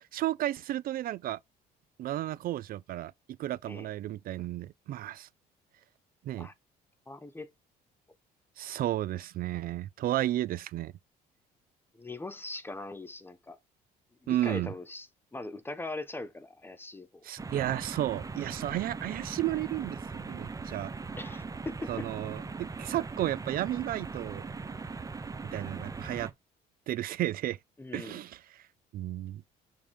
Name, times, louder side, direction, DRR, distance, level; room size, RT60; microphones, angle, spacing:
voice 1, 0.0-1.4 2.0-3.1 3.4-5.3 6.2-6.5 8.6-10.9 14.3-14.7 17.2-20.9 21.9-24.5 25.5-26.3 26.9-27.6 27.9-28.7 28.9-29.4, right 14 dB, 60° right, 0.4 m, -33 dB
voice 2, 7.1-7.5 11.9-13.6 14.2-17.2 21.2-22.1 27.8-28.2, left 2 dB, 15° left, 1.2 m, -41 dB
sound 1, 17.4-26.3, right 4 dB, 20° right, 0.9 m, -40 dB
6.7 x 3.7 x 4.4 m
cardioid pair, 110°, 17 cm